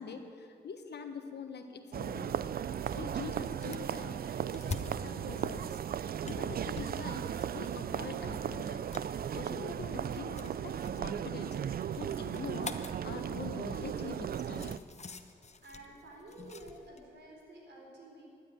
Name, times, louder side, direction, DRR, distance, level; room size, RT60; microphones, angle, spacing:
voice 1, 0.0-2.5 2.9-5.8 6.2-8.8 9.3-14.8, left 5 dB, 70° left, 6 dB, 1.3 m, -44 dB
sound 1, 1.9-14.8, right 9 dB, 55° right, 0.4 m, -36 dB
sound 2, 2.7-17.0, left 4 dB, 40° left, 0.9 m, -48 dB
voice 2, 15.6-18.3, right 1 dB, 75° right, -1 dB, 4.1 m, -51 dB
13.0 x 8.1 x 9.8 m, 2.4 s
cardioid pair, 55°, 18 cm